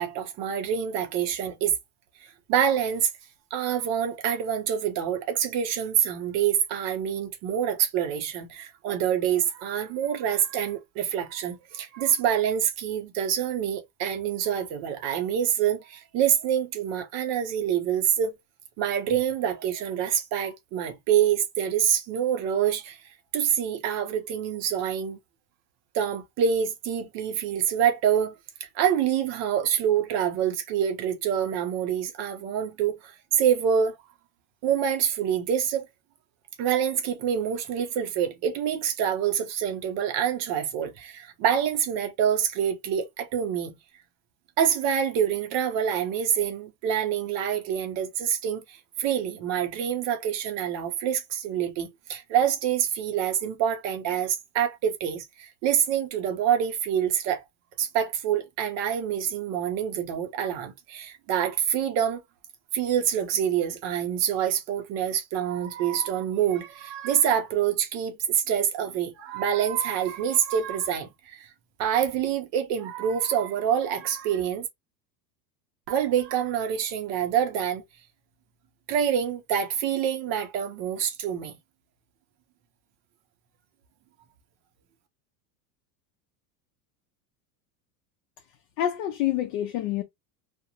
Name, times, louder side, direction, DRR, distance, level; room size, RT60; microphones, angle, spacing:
voice 1, 0.0-1.7 2.5-3.1 3.5-18.4 18.8-23.0 23.3-25.2 25.9-28.3 28.6-34.0 34.6-35.9 36.6-43.7 44.6-57.4 57.8-62.2 62.7-71.5 71.8-74.7 75.9-77.8 78.9-81.5, right 9 dB, 35° right, 0.5 m, -26 dB
voice 2, 88.8-90.0, left 12 dB, 60° left, 0.6 m, -27 dB
2.4 x 2.1 x 2.8 m
supercardioid pair, 155°, 46 cm